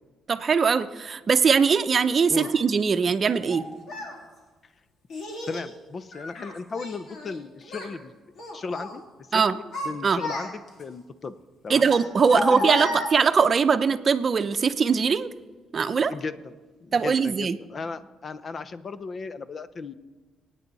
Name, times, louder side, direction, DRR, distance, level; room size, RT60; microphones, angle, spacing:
voice 1, 0.3-3.6 9.3-9.6 10.0-10.2 11.7-15.3 15.7-16.1 16.9-17.6, right 5 dB, 45° right, 9 dB, 0.7 m, -21 dB
Child speech kid speaking, 2.3-2.5 3.4-4.2 5.1-5.7 6.1-7.4 7.6-7.9 8.4-9.0 9.4-10.8 11.8-13.5, left 1 dB, 70° left, 2.8 m, -33 dB
voice 2, 5.5-8.2 8.5-11.3 11.6-11.9 12.3-13.0 16.1-16.5 16.8-19.9, left 4 dB, 40° left, 13 dB, 0.7 m, -36 dB
24.0 x 9.2 x 4.1 m, 1.3 s
cardioid pair, 90°, 0 cm